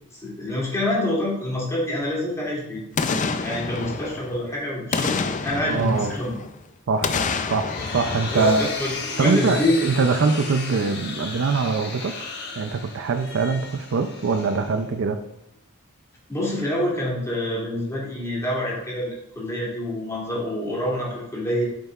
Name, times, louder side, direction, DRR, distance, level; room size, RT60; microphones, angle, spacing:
voice 1, 0.1-2.8 3.4-6.4 8.3-9.8 16.3-21.7, left 1 dB, 15° left, -6 dB, 2.5 m, -26 dB
Boom, 3.0-4.5 4.9-6.6 7.0-9.3 9.6-9.7, left 4 dB, 35° left, 0.5 m, -28 dB
voice 2, 5.7-6.1 6.9-8.7 9.2-12.1 12.6-15.2, right 4 dB, 60° right, 8 dB, 0.5 m, -23 dB
sound 1, 7.3-15.2, left 4 dB, 50° left, 1.1 m, -35 dB
8.6 x 6.6 x 2.4 m, 0.79 s
head